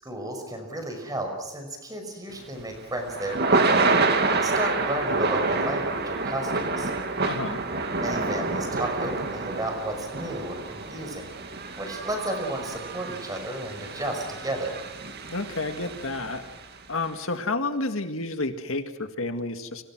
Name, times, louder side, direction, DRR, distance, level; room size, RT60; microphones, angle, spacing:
voice 1, 0.0-3.9 4.3-6.9 8.0-11.3 11.8-14.8, right 1 dB, 15° right, 4 dB, 5.8 m, -33 dB
Thunder / Rain, 2.4-16.6, right 3 dB, 45° right, 2.4 m, -28 dB
voice 2, 7.2-7.6 15.3-16.4 16.9-19.8, left 2 dB, 65° left, 7 dB, 1.9 m, -30 dB
29.5 x 24.5 x 6.2 m, 0.98 s
head